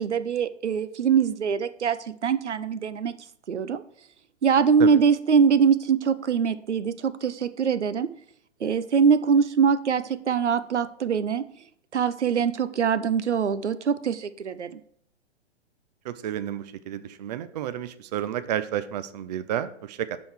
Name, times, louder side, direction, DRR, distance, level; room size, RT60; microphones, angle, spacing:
voice 1, 0.0-2.0 2.2-3.1 3.5-3.8 4.4-8.1 8.6-11.4 11.9-14.7, right 6 dB, 85° right, 13 dB, 0.6 m, -23 dB
voice 2, 16.0-20.2, right 10 dB, 40° right, 13 dB, 0.5 m, -31 dB
6.8 x 3.8 x 6.1 m, 0.67 s
figure-of-eight pair, 115°, 34 cm